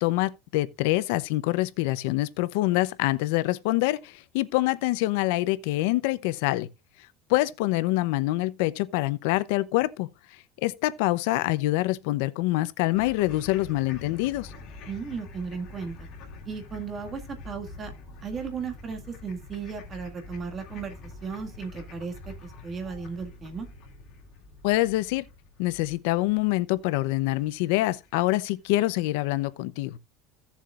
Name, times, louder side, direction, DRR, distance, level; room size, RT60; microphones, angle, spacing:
voice 1, 0.0-6.7 7.3-10.1 10.6-14.5 24.6-25.2 25.6-30.0, left 18 dB, 75° left, 0.7 m, -25 dB
sound 1, 12.9-28.3, left 3 dB, 45° left, 3.3 m, -46 dB
voice 2, 14.9-16.1 16.5-17.9 18.2-23.7, right 5 dB, 25° right, 1.9 m, -36 dB
16.0 x 7.2 x 2.5 m
cardioid pair, 150°, 0 cm